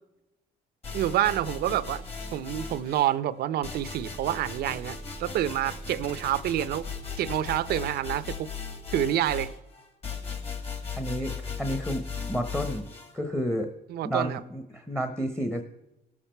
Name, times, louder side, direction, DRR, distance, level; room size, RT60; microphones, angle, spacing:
sound 1, 0.8-3.1 3.6-13.1, left 4 dB, 35° left, 2.3 m, -37 dB
voice 1, 0.9-2.0 2.3-6.9 7.2-8.5 8.9-9.5 13.9-14.4, right 12 dB, 70° right, 0.6 m, -28 dB
voice 2, 10.9-12.0 12.3-12.8 13.1-13.7 14.0-15.6, equal, 5° left, 0.9 m, -30 dB
17.5 x 7.4 x 4.4 m
cardioid pair, 110°, 17 cm